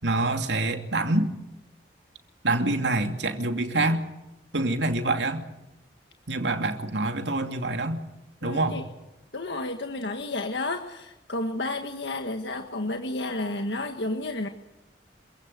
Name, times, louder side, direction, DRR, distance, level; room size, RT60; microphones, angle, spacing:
voice 1, 0.0-1.3 2.4-4.0 4.5-5.4 6.3-8.0 8.4-8.8, right 2 dB, 80° right, 6 dB, 2.7 m, -26 dB
voice 2, 8.4-8.8 9.3-14.5, left 2 dB, 80° left, 5 dB, 1.6 m, -31 dB
27.5 x 16.0 x 9.4 m, 0.96 s
head